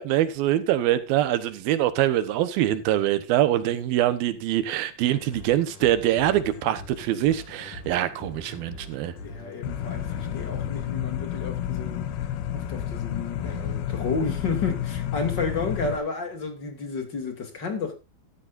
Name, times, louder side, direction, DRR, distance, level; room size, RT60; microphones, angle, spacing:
voice 1, 0.0-9.1, right 12 dB, 75° right, 2.8 m, -24 dB
sound 1, 5.0-10.8, left 2 dB, 60° left, 3.5 m, -43 dB
voice 2, 9.2-12.0 12.5-17.9, left 4 dB, 35° left, 2.6 m, -31 dB
sound 2, 9.6-16.0, left 10 dB, 85° left, 3.0 m, -30 dB
13.5 x 13.0 x 2.6 m
omnidirectional pair, 4.4 m